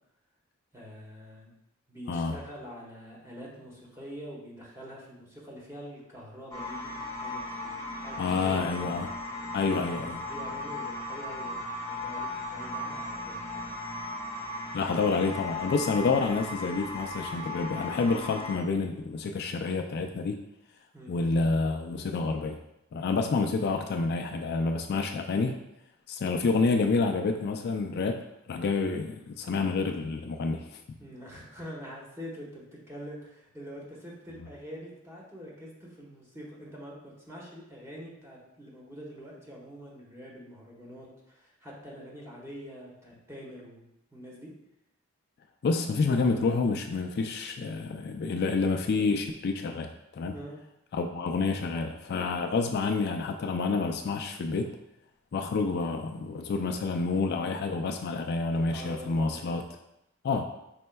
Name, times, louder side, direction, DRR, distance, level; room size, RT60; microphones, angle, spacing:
voice 1, 0.7-1.5 1.9-8.9 10.3-11.6 11.9-13.7 20.9-21.1 31.0-44.5 50.3-50.6 58.6-59.6, equal, 15° right, -4 dB, 1.1 m, -45 dB
voice 2, 2.1-2.4 8.2-9.1 9.5-10.2 14.7-20.4 21.1-22.6 22.9-25.6 26.1-30.8 45.6-50.3 50.9-54.8 55.3-59.6 60.2-60.5, left 4 dB, 50° left, 4 dB, 0.3 m, -28 dB
sound 1, 6.5-18.6, left 2 dB, 20° left, 1.0 m, -37 dB
5.3 x 4.3 x 2.2 m, 0.84 s
head